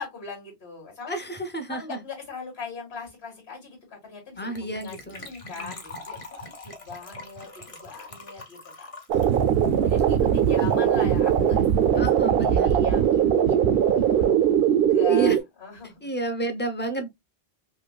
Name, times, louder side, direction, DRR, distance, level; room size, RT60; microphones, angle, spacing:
voice 1, 0.0-1.2 1.7-8.9 9.8-12.1 12.4-15.3 15.6-16.0, left 4 dB, 75° left, 1.9 m, -40 dB
voice 2, 1.1-2.0 4.4-5.3 5.6-5.7 10.2-10.9 11.9-12.8 15.1-15.4 16.0-17.1, right 2 dB, 15° left, 0.5 m, -32 dB
Gurgling / Trickle dribble / Fill (with liquid), 4.6-10.8 11.0-11.1 11.3-11.5 11.8-11.9, left 2 dB, 35° left, 0.8 m, -43 dB
sound 1, 9.1-15.4, right 9 dB, 65° right, 0.7 m, -20 dB
5.3 x 2.3 x 2.2 m
omnidirectional pair, 1.1 m